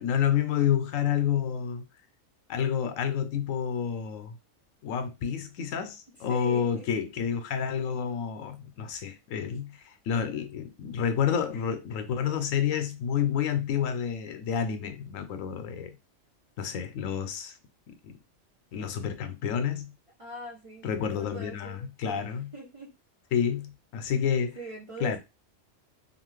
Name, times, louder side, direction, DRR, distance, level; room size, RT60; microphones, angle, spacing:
voice 1, 0.0-1.8 2.5-4.3 4.8-15.9 16.6-17.6 18.0-18.1 18.7-19.9 20.8-22.5 23.3-24.6 25.0-25.2, left 8 dB, 85° left, 1.0 m, -29 dB
voice 2, 6.3-6.9 20.2-22.2 22.5-22.9 24.3-25.2, right 2 dB, 45° right, 0.4 m, -42 dB
2.8 x 2.4 x 3.0 m
omnidirectional pair, 1.3 m